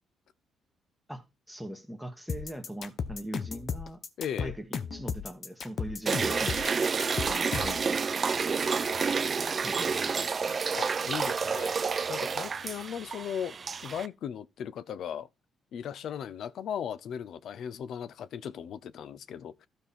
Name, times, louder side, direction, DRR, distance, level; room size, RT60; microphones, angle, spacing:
voice 1, 1.5-4.0 4.4-6.6 7.2-8.0 8.3-8.5 9.6-10.6, right 1 dB, ahead, 1.8 m, -41 dB
sound 1, 2.3-7.9, left 6 dB, 55° left, 1.0 m, -35 dB
voice 2, 4.2-4.6 10.7-11.8 12.1-13.6 13.8-15.3 15.7-19.7, left 8 dB, 70° left, 0.6 m, -37 dB
sound 2, 6.1-14.1, right 5 dB, 40° right, 0.5 m, -29 dB
12.5 x 5.3 x 4.3 m
cardioid pair, 90°, 0 cm